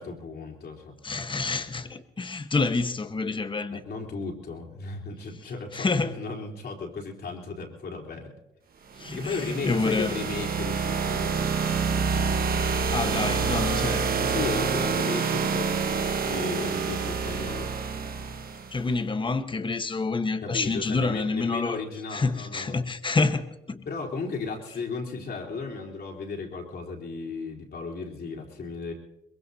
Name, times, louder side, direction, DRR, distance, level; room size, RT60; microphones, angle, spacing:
voice 1, 0.0-1.0 3.7-8.4 9.1-11.5 13.8-17.7 20.4-22.8 23.9-28.9, left 4 dB, 55° left, 3.9 m, -35 dB
voice 2, 1.0-3.8 5.7-6.2 9.0-10.1 12.9-14.1 18.7-21.8 22.1-23.8, left 3 dB, 25° left, 1.2 m, -28 dB
sound 1, 8.9-18.8, right 5 dB, 50° right, 1.3 m, -27 dB
23.0 x 22.0 x 2.8 m
cardioid pair, 90°, 20 cm